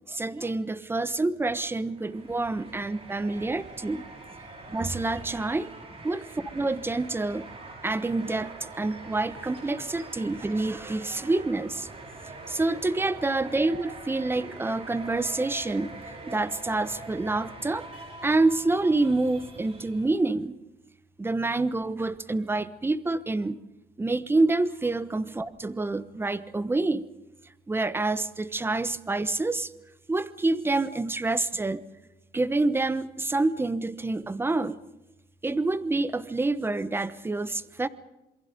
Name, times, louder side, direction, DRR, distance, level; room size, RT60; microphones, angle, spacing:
voice 1, 0.1-4.0 4.7-5.7 6.0-6.2 6.5-7.5 7.8-11.9 12.5-15.9 16.2-17.9 18.2-20.5 21.2-23.6 24.0-27.1 27.7-29.7 30.1-31.8 32.3-34.8 35.4-37.9, right 2 dB, 15° right, 15 dB, 1.0 m, -27 dB
sound 1, 1.8-20.3, right 3 dB, 35° right, 5.6 m, -44 dB
27.5 x 22.5 x 5.3 m, 0.95 s
cardioid pair, 110°, 17 cm